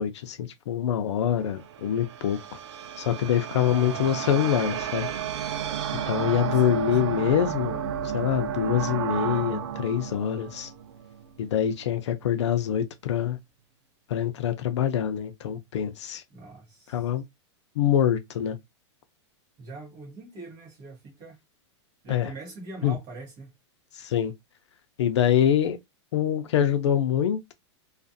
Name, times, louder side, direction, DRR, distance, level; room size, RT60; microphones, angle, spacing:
voice 1, 0.0-2.4 3.0-5.1 6.0-7.8 8.1-10.7 11.4-13.4 14.1-16.2 16.9-17.2 17.8-18.6 22.1-22.3 22.8-23.0 23.9-24.3 25.0-25.8 26.1-27.5, left 9 dB, 75° left, 0.5 m, -25 dB
sound 1, 1.2-11.5, right 9 dB, 70° right, 0.5 m, -32 dB
voice 2, 3.6-4.2 6.5-7.1 16.3-17.0 19.6-21.4 22.0-23.5, right 3 dB, 25° right, 1.1 m, -42 dB
2.4 x 2.4 x 2.5 m
supercardioid pair, 180°, 15 cm